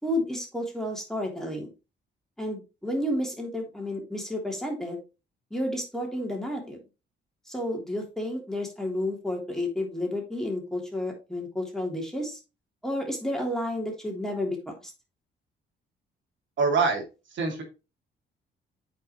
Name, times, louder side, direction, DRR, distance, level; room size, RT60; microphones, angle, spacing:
voice 1, 0.0-1.7 2.4-5.0 5.5-6.8 7.5-12.4 12.8-14.9, left 1 dB, ahead, 0 dB, 3.2 m, -31 dB
voice 2, 16.6-17.0 17.3-17.6, right 4 dB, 70° right, 2 dB, 2.7 m, -24 dB
8.7 x 5.5 x 3.1 m, 0.28 s
cardioid pair, 90°, 20 cm